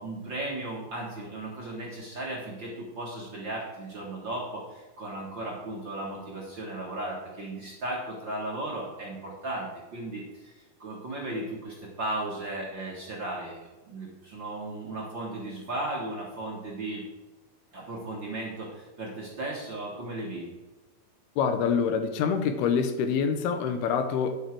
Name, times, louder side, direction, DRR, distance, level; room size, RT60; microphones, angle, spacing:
voice 1, 0.0-10.5 10.8-17.0 17.7-20.5, right 2 dB, 45° right, -4 dB, 1.7 m, -36 dB
voice 2, 21.4-24.3, left 6 dB, 85° left, 9 dB, 2.8 m, -26 dB
11.0 x 7.5 x 4.6 m, 1.2 s
omnidirectional pair, 4.4 m